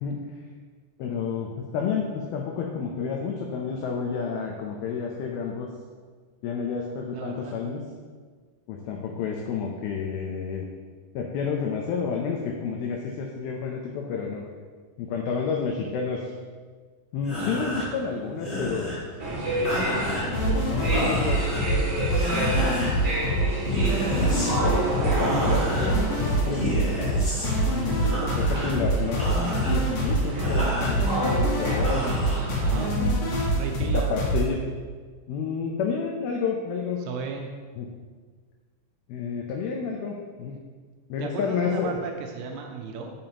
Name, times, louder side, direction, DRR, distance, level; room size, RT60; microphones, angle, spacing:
voice 1, 1.0-5.7 6.4-7.8 8.7-10.7 11.2-14.4 15.0-16.3 17.1-19.0 20.2-21.4 21.7-21.9 22.6-23.0 24.3-26.6 27.7-29.2 29.7-32.0 32.7-33.3 33.9-34.6 35.3-37.0 37.8-37.9 39.1-40.6 41.1-42.0, left 6 dB, 85° left, 1 dB, 2.1 m, -30 dB
voice 2, 7.1-7.6 32.6-32.9 33.5-34.1 37.1-37.5 41.2-43.1, right 5 dB, 80° right, 3 dB, 2.6 m, -34 dB
sound 1, 17.2-33.1, equal, 25° left, 1.7 m, -33 dB
sound 2, 19.2-32.8, right 1 dB, 45° right, 1.3 m, -31 dB
sound 3, 20.3-34.4, right 1 dB, 60° left, 2.3 m, -25 dB
9.0 x 7.1 x 2.9 m, 1.5 s
omnidirectional pair, 5.2 m